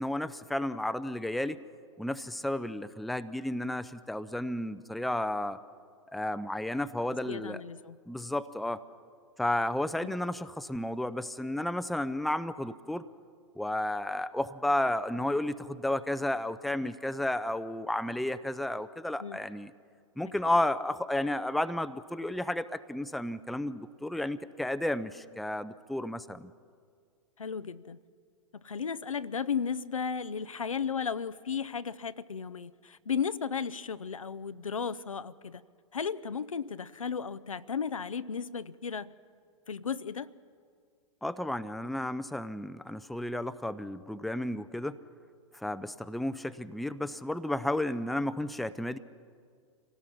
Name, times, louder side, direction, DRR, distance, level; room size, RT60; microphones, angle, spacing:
voice 1, 0.0-1.6 2.0-5.6 6.1-7.6 8.1-8.8 9.4-13.1 13.6-19.7 20.2-26.5 41.2-45.0 45.5-49.0, left 1 dB, ahead, 13 dB, 0.4 m, -32 dB
voice 2, 7.3-8.0 10.0-10.1 19.2-19.4 27.4-28.0 28.6-35.6 35.9-39.1 39.7-40.3, left 6 dB, 85° left, 14 dB, 0.6 m, -34 dB
26.0 x 17.5 x 5.8 m, 2.1 s
figure-of-eight pair, 105°, 17 cm